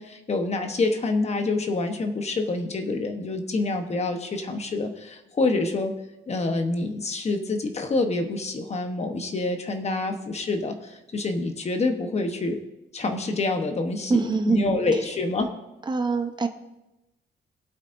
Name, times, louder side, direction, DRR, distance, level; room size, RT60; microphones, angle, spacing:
voice 1, 0.0-5.9 6.3-12.6 12.9-15.5, left 3 dB, 30° left, 5 dB, 1.1 m, -27 dB
voice 2, 14.1-14.6 15.9-16.5, right 4 dB, 20° right, 6 dB, 0.8 m, -23 dB
21.5 x 8.2 x 2.7 m, 0.96 s
wide cardioid pair, 180°, 21 cm